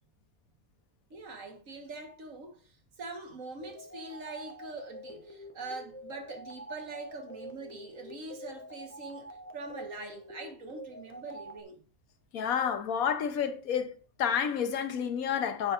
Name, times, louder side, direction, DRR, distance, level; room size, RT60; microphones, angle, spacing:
voice 1, 1.1-2.7 3.0-11.8, right 3 dB, 65° right, 1.9 m, -43 dB
sound 1, 3.6-11.6, equal, 10° left, 1.0 m, -47 dB
voice 2, 12.3-15.7, left 8 dB, 75° left, 1.3 m, -30 dB
9.8 x 8.0 x 2.6 m
omnidirectional pair, 1.5 m